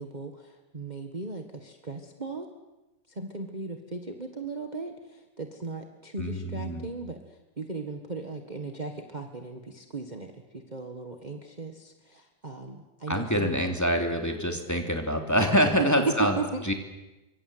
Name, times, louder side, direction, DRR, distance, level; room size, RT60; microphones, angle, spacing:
voice 1, 0.0-2.5 3.1-13.7 15.8-16.6, right 4 dB, 25° right, 4 dB, 1.8 m, -36 dB
voice 2, 6.2-6.9 13.1-16.4 16.6-16.7, equal, 10° left, 3 dB, 2.9 m, -25 dB
26.5 x 24.5 x 8.1 m, 1.0 s
omnidirectional pair, 1.9 m